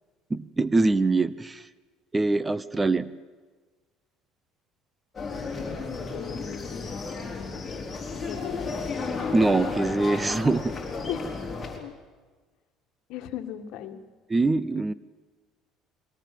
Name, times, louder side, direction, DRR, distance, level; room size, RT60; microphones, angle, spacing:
voice 1, 0.3-1.6 2.1-3.1 9.3-10.6 14.3-14.9, right 3 dB, 15° right, 17 dB, 0.7 m, -23 dB
sound 1, 5.1-11.8, left 4 dB, 20° left, 4.3 m, -33 dB
voice 2, 6.1-7.9 8.1-8.8 11.1-11.3 11.8-11.9 13.1-14.0, left 10 dB, 70° left, 8 dB, 1.7 m, -38 dB
21.5 x 18.0 x 7.6 m, 1.4 s
cardioid pair, 115°, 0 cm